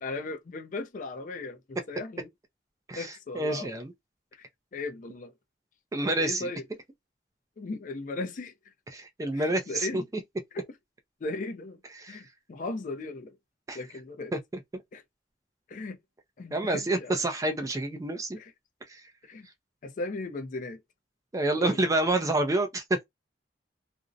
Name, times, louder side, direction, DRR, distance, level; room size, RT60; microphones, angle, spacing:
voice 1, 0.0-2.3 3.0-3.7 4.4-4.5 4.7-5.3 6.2-6.6 7.6-8.5 9.3-10.0 10.5-10.7 11.2-11.8 12.1-13.4 13.7-14.3 14.9-15.0 15.7-16.0 16.4-17.2 18.4-18.5 19.2-19.5 19.8-20.8 21.6-22.1, left 3 dB, 45° left, 0.4 m, -37 dB
voice 2, 2.9-3.9 5.9-6.5 8.9-10.0 11.9-12.2 13.7-13.8 14.3-14.4 14.7-14.8 16.5-18.4 18.9-19.0 21.3-23.0, right 2 dB, 20° right, 0.4 m, -28 dB
2.5 x 2.0 x 2.4 m
head